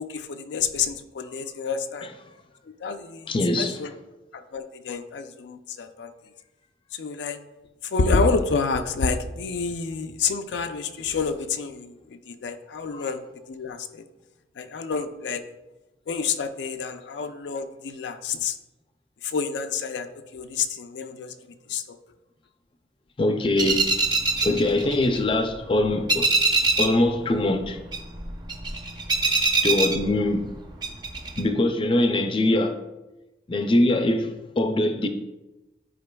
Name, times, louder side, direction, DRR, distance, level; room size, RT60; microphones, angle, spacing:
voice 1, 0.0-2.1 2.8-3.3 3.6-3.9 4.3-6.1 6.9-7.4 7.9-11.9 12.3-13.2 13.5-14.0 14.6-15.4 16.1-18.5 19.2-20.1 20.3-21.3 21.7-21.8, left 4 dB, 85° left, 0.4 m, -28 dB
voice 2, 3.3-3.9 12.9-13.1 23.2-23.9 24.4-26.3 26.8-27.8 29.6-30.5 31.4-32.8 33.5-35.1, left 1 dB, 30° left, 0.4 m, -23 dB
sound 1, 23.6-25.6 25.8-27.1 27.3-30.5 30.8-31.4, right 3 dB, 25° right, 0.6 m, -23 dB
10.0 x 4.4 x 2.3 m
head